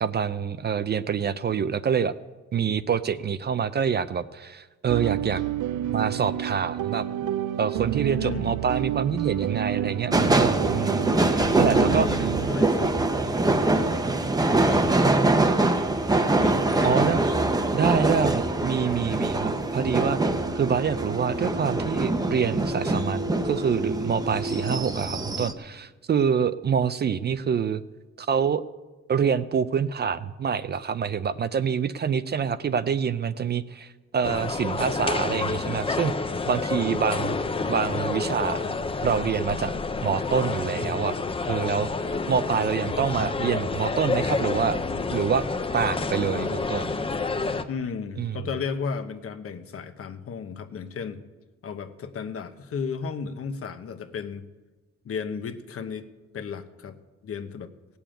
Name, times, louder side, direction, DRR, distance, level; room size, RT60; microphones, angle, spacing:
voice 1, 0.0-2.1 2.5-5.4 5.9-7.3 7.6-12.1 16.8-17.2 17.7-20.2 20.5-27.8 28.2-28.6 29.1-36.1 36.5-37.4 37.7-38.6 39.0-39.7 40.0-41.2 41.4-44.8 45.1-45.4 45.7-46.9 48.2-48.3, right 7 dB, 35° right, 13 dB, 0.4 m, -26 dB
sound 1, 4.9-12.5, right 12 dB, 85° right, 0.6 m, -30 dB
voice 2, 8.1-8.6 11.2-13.4 14.1-15.2 16.2-17.7 47.7-51.2 51.6-54.5 55.0-56.1 56.3-57.0 57.2-57.7, left 6 dB, 50° left, 9 dB, 1.0 m, -34 dB
sound 2, 10.1-25.5, right 2 dB, 15° right, 0.8 m, -24 dB
sound 3, 34.2-47.6, left 3 dB, 20° left, 0.6 m, -29 dB
18.0 x 7.0 x 8.9 m, 1.2 s
cardioid pair, 155°, 30 cm